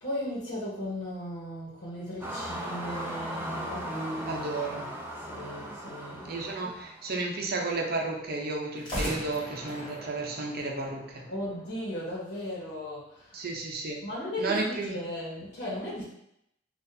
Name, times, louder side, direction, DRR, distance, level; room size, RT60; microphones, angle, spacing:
voice 1, 0.0-4.6 5.3-6.7 11.3-13.4 14.0-16.0, left 1 dB, 60° left, -5 dB, 1.1 m, -36 dB
sound 1, 2.2-7.1, right 1 dB, 10° right, 0.4 m, -38 dB
voice 2, 4.3-5.0 6.2-11.3 13.3-14.0 14.4-15.0, right 3 dB, 55° right, 0 dB, 0.6 m, -33 dB
sound 2, 8.7-11.8, equal, 25° left, 1.0 m, -40 dB
4.1 x 2.5 x 2.6 m, 0.78 s
head